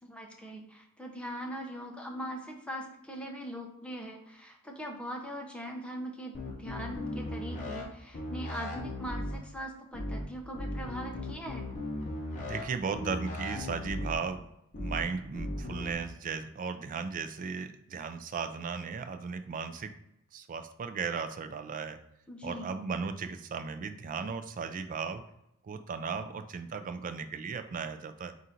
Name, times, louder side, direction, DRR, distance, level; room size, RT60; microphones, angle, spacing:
voice 1, 0.0-11.7 22.3-22.7, equal, 5° left, 1 dB, 0.6 m, -41 dB
sound 1, 6.3-7.8 8.1-9.3 9.9-10.2 10.5-12.6 12.9-14.1 14.7-15.0 15.3-15.9, left 1 dB, 35° left, 0.9 m, -37 dB
voice 2, 12.4-19.9 20.3-22.0 22.4-25.2 25.6-28.3, right 5 dB, 40° right, 9 dB, 0.3 m, -36 dB
3.8 x 2.5 x 4.3 m, 0.83 s
head